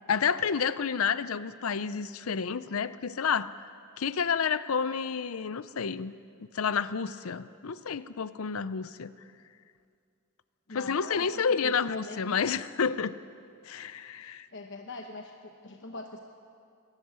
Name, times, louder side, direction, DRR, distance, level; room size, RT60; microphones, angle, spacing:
voice 1, 0.1-3.5 4.0-6.1 6.5-9.1 10.7-13.2 13.6-14.5, left 6 dB, 90° left, 15 dB, 0.6 m, -30 dB
voice 2, 10.7-11.3 11.6-12.4 14.2-16.2, left 2 dB, 60° left, 3 dB, 1.0 m, -42 dB
22.0 x 13.0 x 9.4 m, 2.4 s
head